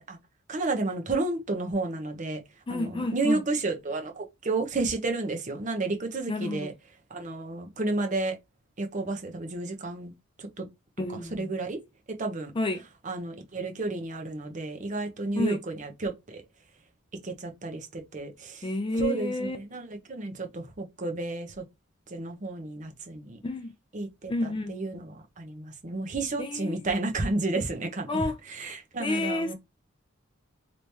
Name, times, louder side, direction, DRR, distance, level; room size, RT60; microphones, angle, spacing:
voice 1, 0.5-2.4 2.7-6.7 7.1-8.4 8.8-10.1 10.4-10.7 11.3-11.8 12.2-12.5 13.1-16.4 17.2-18.7 19.0-21.6 22.1-23.4 23.9-29.5, right 2 dB, 40° right, 0.7 m, -31 dB
voice 2, 2.7-3.4 6.3-6.7 11.0-11.5 12.6-12.8 15.3-15.6 18.6-19.6 23.4-23.7 24.3-24.7 26.4-26.8 28.1-28.4 29.0-29.5, left 2 dB, 25° left, 0.4 m, -30 dB
3.3 x 3.0 x 2.8 m
head